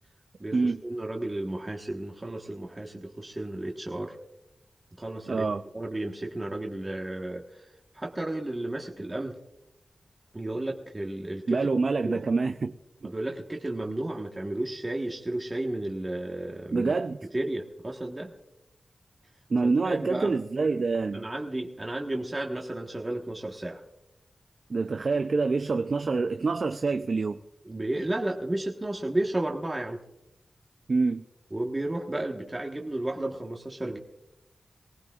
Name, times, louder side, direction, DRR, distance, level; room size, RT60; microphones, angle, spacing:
voice 1, 0.4-4.2 5.0-5.4 5.7-7.7 7.9-9.4 10.3-11.7 12.0-12.2 13.0-16.9 17.3-18.3 19.8-20.3 21.1-23.8 27.6-30.0 31.5-34.0, right 1 dB, 25° right, 1.3 m, -33 dB
voice 2, 5.3-5.6 11.5-12.7 13.0-13.1 16.7-17.2 19.5-21.3 24.7-27.4 30.9-31.2, right 4 dB, 60° right, 0.5 m, -26 dB
24.0 x 18.5 x 2.4 m
wide cardioid pair, 80°, 0 cm